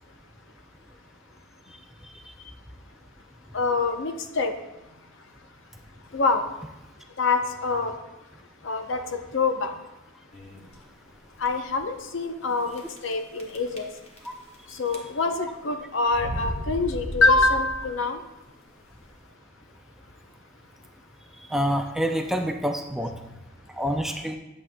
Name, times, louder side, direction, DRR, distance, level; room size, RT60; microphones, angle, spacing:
voice 1, 3.5-4.5 6.1-6.4 7.2-7.9 8.6-9.7 11.4-13.9 14.8-18.2, left 3 dB, 65° left, 6 dB, 0.7 m, -25 dB
sound 1, 10.3-10.7 11.4-11.5 11.7-11.8 12.7-13.1 13.4-14.5 14.8-15.4 16.1-18.0, equal, 30° left, 1.2 m, -35 dB
voice 2, 21.5-23.1 23.8-24.4, equal, ahead, 3 dB, 0.4 m, -26 dB
10.5 x 7.4 x 2.2 m, 0.99 s
head